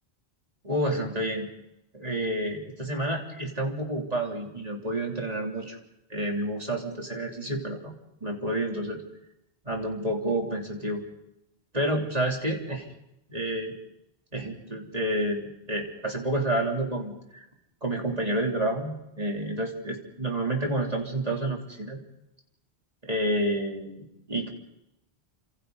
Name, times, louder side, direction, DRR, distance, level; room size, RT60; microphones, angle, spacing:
voice 1, 0.6-1.5 1.9-5.8 6.1-7.9 8.2-9.0 9.6-11.0 11.7-12.8 13.3-13.7 14.3-17.4 17.8-22.0 23.0-24.5, right 1 dB, 35° right, 0 dB, 3.3 m, -29 dB
30.0 x 26.0 x 4.0 m, 0.84 s
omnidirectional pair, 1.1 m